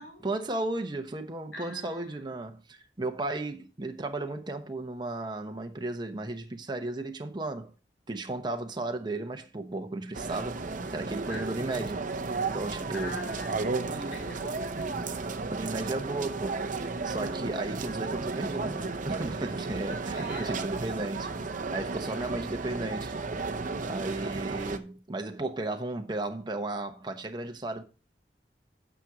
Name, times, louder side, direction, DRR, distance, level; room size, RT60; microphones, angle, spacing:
voice 1, 0.2-7.7 8.1-10.6 10.9-12.1 12.5-13.3 15.5-21.4 21.7-23.1 23.9-27.8, right 2 dB, 25° right, 1.0 m, -34 dB
voice 2, 1.5-2.3 11.3-11.7 12.9-15.3 20.1-20.6 22.1-22.4, left 1 dB, 85° left, 3.3 m, -43 dB
sound 1, 10.1-24.8, right 3 dB, 50° right, 0.8 m, -34 dB
9.0 x 6.2 x 5.0 m
head